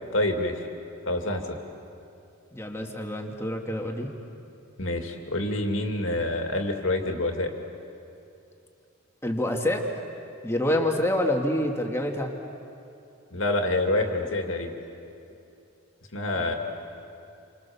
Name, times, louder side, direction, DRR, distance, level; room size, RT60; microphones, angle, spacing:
voice 1, 0.1-0.6 1.1-1.5 4.8-7.5 13.3-14.7 16.1-16.6, left 2 dB, 70° left, 4 dB, 2.5 m, -27 dB
voice 2, 2.5-4.1 9.2-9.8 10.4-12.3 16.3-16.6, left 1 dB, 15° left, 2 dB, 2.1 m, -27 dB
28.5 x 26.0 x 7.1 m, 2.8 s
head